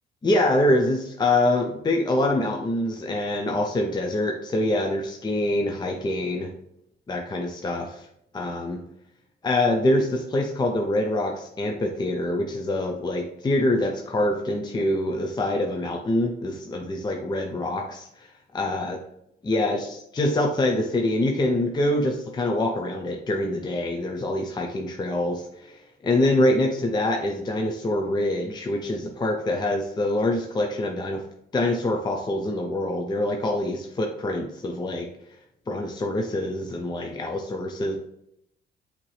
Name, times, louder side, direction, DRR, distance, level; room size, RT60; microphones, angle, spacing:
voice 1, 0.2-6.5 7.1-8.1 8.3-8.8 9.4-18.3 18.5-19.0 19.4-31.2 31.5-35.1 35.7-38.0, left 1 dB, 20° left, 2 dB, 0.5 m, -25 dB
5.7 x 2.8 x 3.2 m, 0.79 s
cardioid pair, 90°, 20 cm